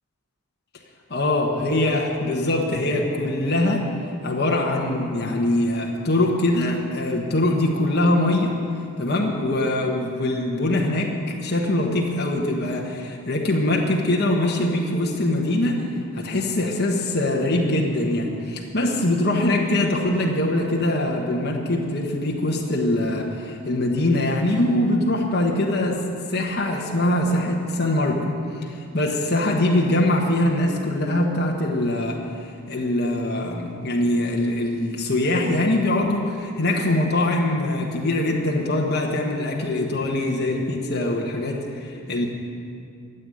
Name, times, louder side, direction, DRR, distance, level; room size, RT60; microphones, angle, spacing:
voice 1, 1.1-3.9 4.2-8.6 9.0-15.8 16.1-26.0 26.3-28.3 28.6-32.2 32.7-42.3, left 1 dB, 45° left, -1 dB, 1.4 m, -23 dB
13.5 x 8.2 x 9.3 m, 2.4 s
head